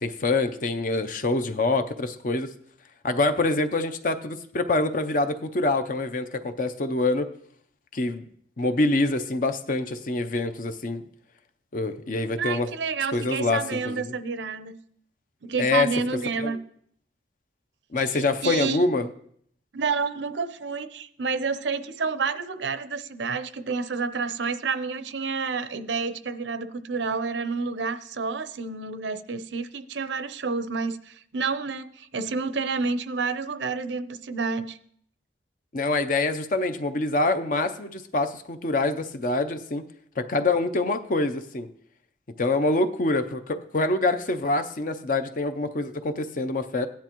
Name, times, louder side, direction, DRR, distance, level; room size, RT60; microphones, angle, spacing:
voice 1, 0.0-2.5 3.0-7.3 7.9-8.2 8.6-11.0 11.7-12.7 13.1-14.0 15.6-15.9 16.4-16.6 17.9-19.1 35.7-39.9 40.2-41.7 42.4-46.9, left 2 dB, 45° left, 0.6 m, -25 dB
voice 2, 12.4-14.8 15.4-16.6 18.1-19.1 19.7-34.8, right 4 dB, 75° right, 0.6 m, -29 dB
16.0 x 10.5 x 3.0 m
head